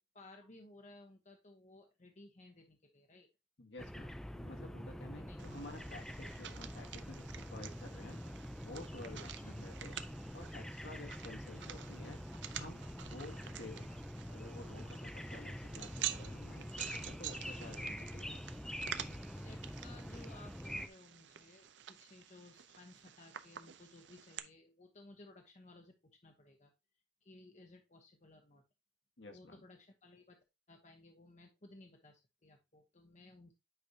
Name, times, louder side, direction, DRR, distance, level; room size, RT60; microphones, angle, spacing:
voice 1, 0.1-3.3 5.2-5.4 9.4-9.7 18.9-26.7 27.2-28.6 29.3-30.4 30.7-33.5, left 2 dB, 40° left, 4 dB, 0.9 m, -58 dB
voice 2, 3.6-8.2 8.6-10.0 10.3-12.2 12.6-14.0 14.3-18.5 29.2-29.6, left 2 dB, 70° left, 3 dB, 1.6 m, -52 dB
sound 1, 3.8-20.9, equal, 5° left, 0.4 m, -46 dB
sound 2, 5.4-24.4, right 10 dB, 70° right, 0.6 m, -49 dB
9.0 x 5.1 x 2.8 m, 0.25 s
head